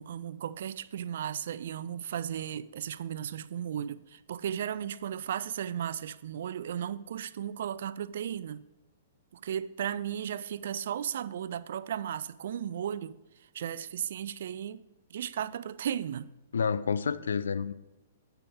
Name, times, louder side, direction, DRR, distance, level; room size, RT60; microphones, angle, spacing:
voice 1, 0.0-8.6 9.3-13.2 13.5-14.8 15.1-16.3, right 9 dB, 65° right, 0.3 m, -35 dB
voice 2, 16.5-17.7, left 6 dB, 80° left, 0.4 m, -29 dB
8.9 x 8.3 x 3.5 m
hypercardioid pair, 120°, 0 cm